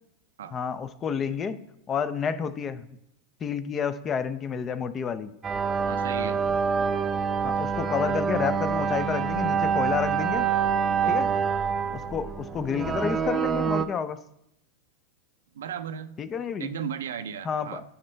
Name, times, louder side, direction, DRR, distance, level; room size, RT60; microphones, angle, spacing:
voice 1, 0.5-1.6 1.9-2.9 3.4-5.3 7.4-10.5 11.1-11.3 11.9-14.2 16.2-16.7 17.4-17.8, left 7 dB, 30° left, 13 dB, 0.5 m, -30 dB
sound 1, 5.4-13.9, right 6 dB, 25° right, 0.5 m, -26 dB
voice 2, 5.9-6.4 11.0-11.2 15.5-16.2 16.6-17.8, right 8 dB, 80° right, 11 dB, 0.5 m, -35 dB
10.5 x 4.3 x 3.3 m, 0.77 s
hypercardioid pair, 105°, 0 cm